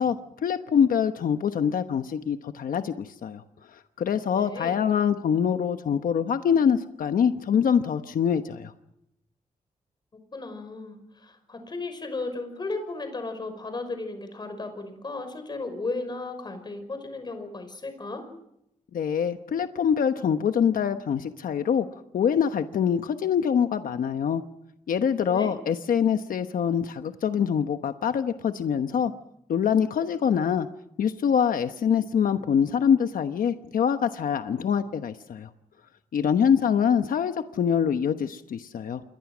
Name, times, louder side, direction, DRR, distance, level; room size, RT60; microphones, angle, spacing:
voice 1, 0.0-3.4 3.7-8.7 18.9-21.9 22.1-24.4 24.9-29.1 29.5-30.7 31.0-35.5 36.1-39.0, left 7 dB, 90° left, 8 dB, 1.1 m, -24 dB
voice 2, 4.3-4.8 10.3-18.3 25.3-25.5, left 3 dB, 30° left, 8 dB, 5.4 m, -35 dB
28.0 x 22.0 x 6.2 m, 0.81 s
wide cardioid pair, 145°, 14 cm